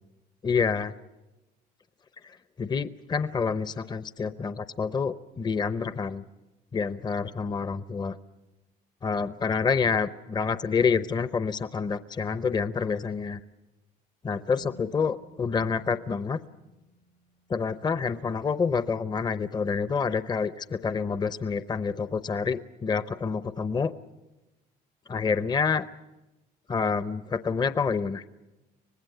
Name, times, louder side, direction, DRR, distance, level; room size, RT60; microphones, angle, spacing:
voice 1, 0.4-0.9 2.6-6.2 6.7-8.2 9.0-13.4 14.2-16.4 17.5-23.9 25.1-25.9 26.7-28.2, left 5 dB, 25° left, 14 dB, 0.7 m, -28 dB
sound 1, 14.6-18.4, left 2 dB, 85° left, 3.7 m, -56 dB
25.0 x 19.0 x 7.9 m, 1.0 s
cardioid pair, 110°, 17 cm